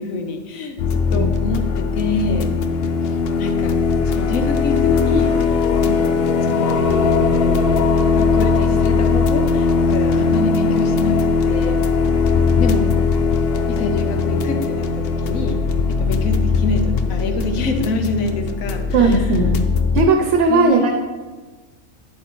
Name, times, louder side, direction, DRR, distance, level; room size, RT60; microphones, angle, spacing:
voice 1, 0.0-2.6 3.0-5.6 6.4-7.7 8.1-11.9 12.6-12.9 13.7-15.6 15.9-19.3 20.5-21.0, left 3 dB, 80° left, 6 dB, 1.2 m, -26 dB
sound 1, 0.8-20.1, left 4 dB, 60° left, 0.6 m, -19 dB
voice 2, 18.9-19.6 19.9-21.0, right 3 dB, 65° right, 4 dB, 0.9 m, -17 dB
8.8 x 7.8 x 3.0 m, 1.3 s
omnidirectional pair, 1.4 m